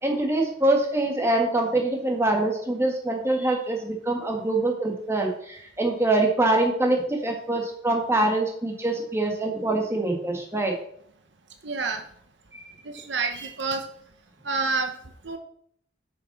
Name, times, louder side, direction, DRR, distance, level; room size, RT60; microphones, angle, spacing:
voice 1, 0.0-10.7, right 2 dB, 15° right, 1 dB, 1.7 m, -24 dB
voice 2, 11.6-12.0 12.9-13.8 14.4-14.9 15.2-15.4, right 4 dB, 70° right, 5 dB, 1.0 m, -27 dB
7.9 x 5.9 x 6.0 m, 0.65 s
head